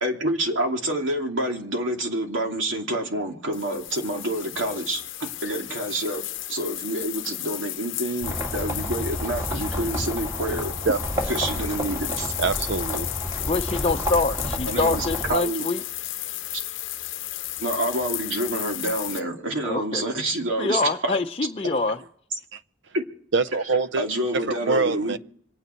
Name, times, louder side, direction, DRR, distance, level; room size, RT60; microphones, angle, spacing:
voice 1, 0.0-5.0 5.4-6.2 6.5-10.7 11.3-12.3 14.7-15.6 17.6-21.1 22.9-23.0 24.0-25.2, right 1 dB, 90° right, 2.6 m, -27 dB
sound 1, 3.5-19.2, left 14 dB, 75° left, 0.7 m, -34 dB
sound 2, 8.2-15.4, equal, 15° right, 2.6 m, -31 dB
voice 2, 12.4-13.1 22.5-22.6 23.3-24.0 24.5-25.2, right 4 dB, 65° right, 0.6 m, -24 dB
voice 3, 13.5-15.8 19.6-20.0 20.5-22.0, left 3 dB, 30° left, 0.6 m, -25 dB
26.5 x 9.6 x 4.5 m
head